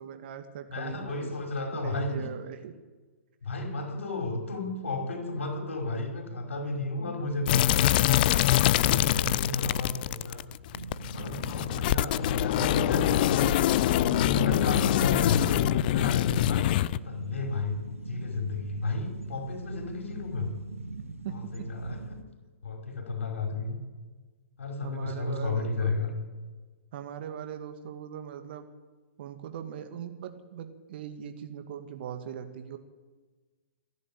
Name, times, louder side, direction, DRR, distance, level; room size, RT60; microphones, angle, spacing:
voice 1, 0.0-1.3 1.7-2.8 11.2-11.7 21.0-21.7 24.8-25.9 26.9-28.7 29.2-32.8, right 9 dB, 50° right, 8 dB, 2.3 m, -40 dB
voice 2, 0.7-2.2 3.4-7.8 8.6-10.4 11.1-16.7 17.0-17.8 18.1-20.5 21.3-22.0 22.6-23.8 24.6-26.1, left 3 dB, 65° left, 3 dB, 5.4 m, -33 dB
sound 1, 7.5-17.0, left 15 dB, 40° left, 0.5 m, -24 dB
sound 2, 10.7-22.2, right 2 dB, 85° right, 1.6 m, -41 dB
27.5 x 11.0 x 9.0 m, 1.4 s
figure-of-eight pair, 115°, 7 cm